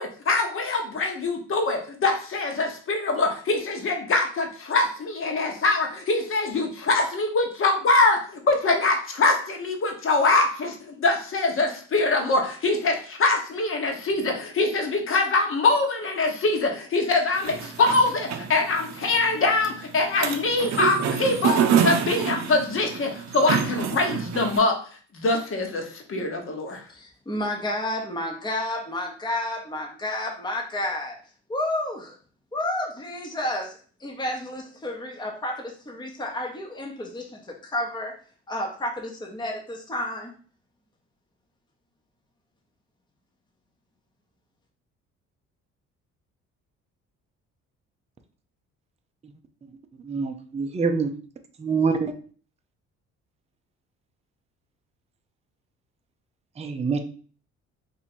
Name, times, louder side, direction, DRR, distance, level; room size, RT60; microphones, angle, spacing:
voice 1, 0.0-24.7 25.1-26.8, left 3 dB, 45° left, 3 dB, 1.1 m, -23 dB
sound 1, 17.3-24.6, right 7 dB, 65° right, 0.6 m, -27 dB
voice 2, 26.9-31.2 31.5-32.1 32.5-38.1 38.5-40.3, left 1 dB, 15° left, 0 dB, 0.8 m, -31 dB
voice 3, 50.0-51.1 51.6-52.1 56.6-57.0, right 5 dB, 20° right, 6 dB, 0.5 m, -25 dB
2.9 x 2.7 x 4.3 m, 0.42 s
cardioid pair, 85°, 30 cm